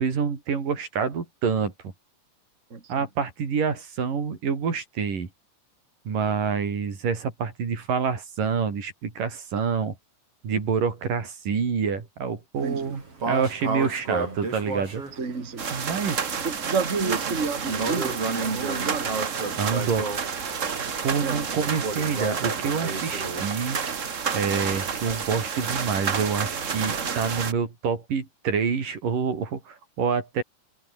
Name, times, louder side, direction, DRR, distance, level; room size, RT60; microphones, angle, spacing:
voice 1, 0.0-1.7 2.9-5.3 6.1-10.0 10.4-15.0 15.7-16.3 19.6-20.5 21.0-23.8 24.3-30.4, right 6 dB, 85° right, 5.8 m, -27 dB
voice 2, 2.7-3.1 12.6-12.9 15.2-15.8 16.4-19.1 21.2-21.5, right 5 dB, 25° right, 3.0 m, -30 dB
sound 1, 12.6-23.4, right 3 dB, 45° right, 6.9 m, -33 dB
sound 2, 15.6-27.5, right 6 dB, 60° right, 0.7 m, -30 dB
omnidirectional pair, 3.7 m